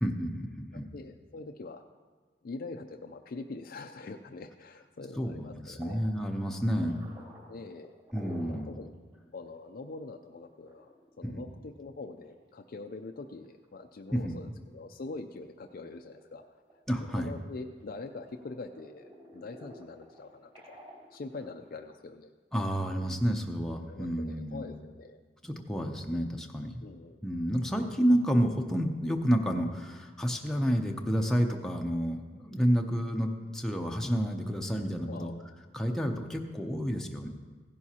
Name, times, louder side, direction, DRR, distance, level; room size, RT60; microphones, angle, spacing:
voice 1, 0.0-0.9 5.2-7.0 8.1-8.7 11.2-11.4 14.1-14.4 16.9-17.3 22.5-24.7 25.4-26.8 27.2-35.3 35.7-37.3, equal, 5° left, 2 dB, 0.6 m, -30 dB
voice 2, 0.7-1.8 2.4-6.0 7.5-7.9 8.5-8.9 9.3-16.6 17.1-20.8 21.1-22.3 23.9-25.2 26.8-27.2 35.1-35.5, left 3 dB, 50° left, 4 dB, 0.4 m, -44 dB
sound 1, 5.8-8.7 9.1-9.2 9.6-9.7 10.4-12.7 13.2-13.7 14.1-14.2 14.8-15.7 16.0-17.9 18.3-21.8, equal, 30° right, 3.6 m, -51 dB
15.5 x 10.5 x 2.8 m, 1.4 s
head